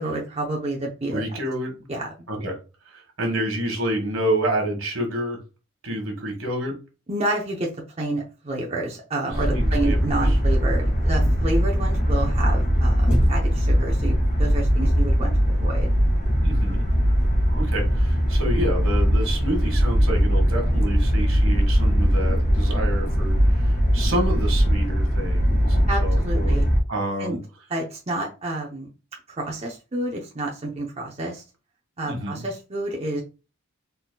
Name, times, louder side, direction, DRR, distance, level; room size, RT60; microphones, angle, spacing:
voice 1, 0.0-1.4 1.9-2.3 7.1-7.7 8.0-15.9 25.9-26.7 27.2-27.4 27.7-28.9 29.3-31.4 32.0-33.2, right 1 dB, 30° right, -2 dB, 0.7 m, -29 dB
voice 2, 1.1-1.7 2.3-2.6 2.9-5.4 5.8-6.8 9.5-10.0 10.2-10.4 16.4-16.9 17.5-26.6 26.9-27.4 32.0-32.4, right 1 dB, 70° right, 2 dB, 1.6 m, -28 dB
sound 1, 9.3-26.8, equal, 40° left, 1.7 m, -20 dB
4.1 x 4.0 x 2.2 m, 0.32 s
head